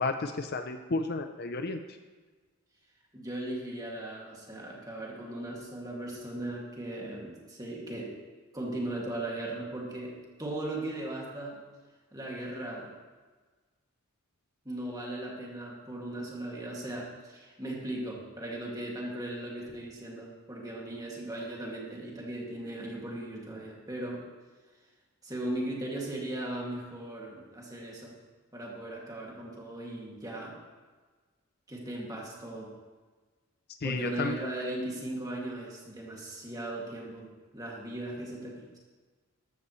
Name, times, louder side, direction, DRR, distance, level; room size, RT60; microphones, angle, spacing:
voice 1, 0.0-1.8 33.8-34.4, left 3 dB, 45° left, 7 dB, 0.6 m, -32 dB
voice 2, 3.1-8.1 8.5-11.6 12.1-12.9 14.6-24.2 25.2-28.2 28.5-30.6 31.7-32.7 33.8-38.8, right 1 dB, 15° right, -3 dB, 2.3 m, -38 dB
13.5 x 12.5 x 3.2 m, 1.4 s
head